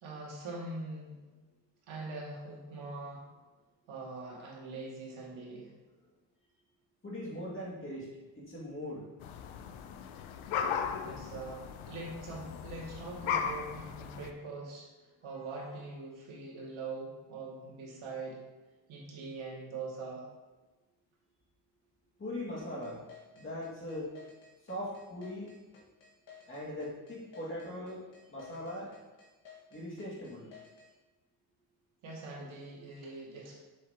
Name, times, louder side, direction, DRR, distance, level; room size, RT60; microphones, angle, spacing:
voice 1, 0.0-1.2 1.9-3.3 3.9-5.7 11.0-14.9 15.2-18.4 18.9-20.3 32.0-33.6, right 3 dB, 80° right, -4 dB, 2.3 m, -43 dB
voice 2, 7.0-9.1 15.2-15.4 22.2-23.1 23.3-24.1 24.6-25.6 26.5-28.9 29.7-30.5, left 1 dB, 25° left, -5 dB, 2.2 m, -40 dB
sound 1, 9.2-14.3, left 7 dB, 85° left, 0.7 m, -37 dB
sound 2, 22.6-30.9, left 6 dB, 65° left, 1.8 m, -55 dB
7.4 x 7.2 x 2.9 m, 1.2 s
cardioid pair, 130°, 47 cm